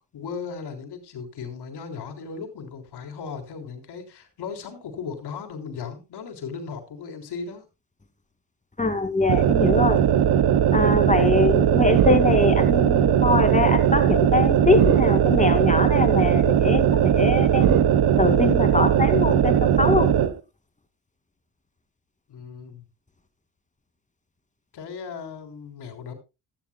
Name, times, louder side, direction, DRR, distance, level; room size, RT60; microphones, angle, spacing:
voice 1, 0.0-7.6 22.3-22.8 24.7-26.1, left 5 dB, 70° left, 3.5 m, -36 dB
voice 2, 8.8-10.0 10.7-17.9 18.2-20.1, left 3 dB, 15° left, 2.3 m, -23 dB
sound 1, 9.3-20.3, right 9 dB, 65° right, 1.1 m, -19 dB
16.0 x 13.0 x 2.2 m
cardioid pair, 75°, 41 cm